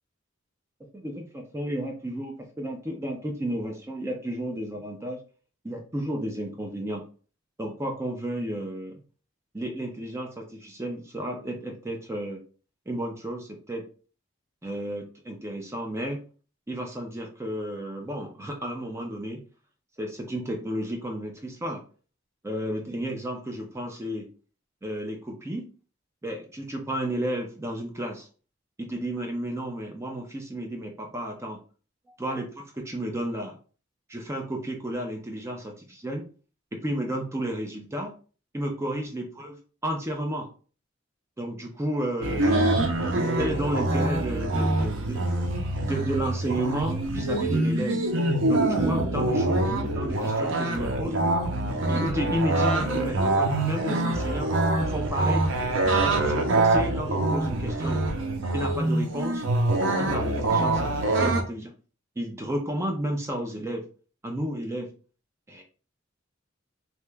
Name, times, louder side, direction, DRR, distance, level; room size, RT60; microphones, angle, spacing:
voice 1, 0.9-5.2 5.6-7.0 7.6-9.0 9.5-12.4 12.9-13.9 14.6-16.2 16.7-19.4 20.0-21.8 22.4-24.3 24.8-25.7 26.2-28.3 28.8-31.6 32.1-33.6 34.1-36.3 36.7-38.2 38.5-39.6 39.8-40.5 41.4-42.6 43.1-45.2 45.9-48.0 48.5-51.2 51.9-54.5 54.8-55.5 56.0-58.0 58.5-59.4 59.8-61.7 62.2-63.8 64.2-64.9 65.5-65.6, right 1 dB, 15° right, 2 dB, 0.4 m, -32 dB
sound 1, 42.2-61.4, right 2 dB, 75° right, 0.6 m, -25 dB
2.8 x 2.2 x 3.3 m, 0.38 s
head